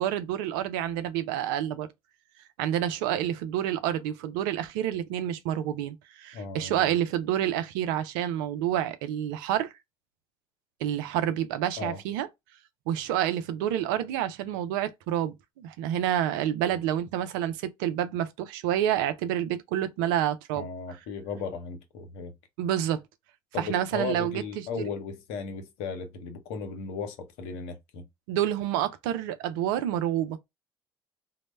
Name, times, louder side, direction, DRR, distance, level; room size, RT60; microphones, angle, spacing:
voice 1, 0.0-1.9 2.6-9.7 10.8-12.3 12.9-20.6 22.6-23.0 23.6-24.9 28.3-30.4, right 11 dB, 75° right, 0.4 m, -28 dB
voice 2, 6.3-7.0 11.8-12.0 20.5-22.3 23.5-28.1, left 5 dB, 70° left, 0.6 m, -36 dB
2.0 x 2.0 x 3.0 m
hypercardioid pair, 60°, 11 cm